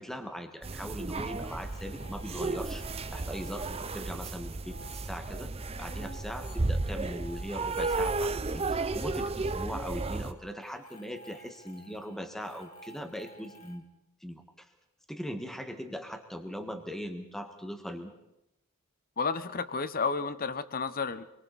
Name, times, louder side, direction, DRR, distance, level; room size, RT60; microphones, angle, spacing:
voice 1, 0.0-2.9 3.1-5.5 5.8-13.8 14.2-14.7 15.1-18.1, equal, ahead, 5 dB, 1.7 m, -40 dB
sound 1, 0.6-10.3, right 3 dB, 30° right, 0.7 m, -33 dB
sound 2, 1.3-13.8, right 1 dB, 80° left, 2.9 m, -53 dB
voice 2, 19.2-21.2, left 4 dB, 40° left, 13 dB, 1.0 m, -31 dB
27.5 x 23.5 x 4.2 m, 0.87 s
head